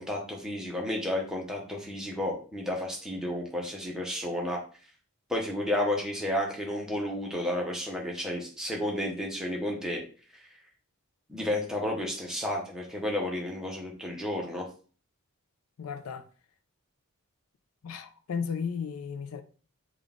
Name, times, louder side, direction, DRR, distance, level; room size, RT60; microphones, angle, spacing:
voice 1, 0.0-4.6 5.3-10.0 10.3-10.4 11.3-14.7, left 1 dB, 5° right, 0.7 m, -32 dB
voice 2, 15.8-16.2 17.8-19.4, left 6 dB, 70° left, 0.4 m, -34 dB
3.7 x 2.4 x 3.5 m
head